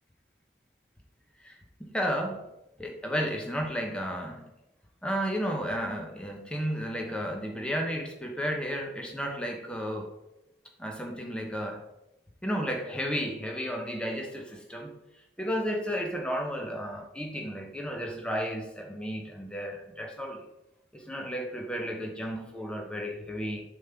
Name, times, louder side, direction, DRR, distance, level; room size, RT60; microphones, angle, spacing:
voice 1, 1.4-2.4 2.8-4.5 5.0-10.1 10.8-11.8 12.4-14.9 15.4-20.5 20.9-23.6, equal, 5° left, 1 dB, 1.0 m, -33 dB
7.1 x 3.7 x 5.9 m, 0.88 s
head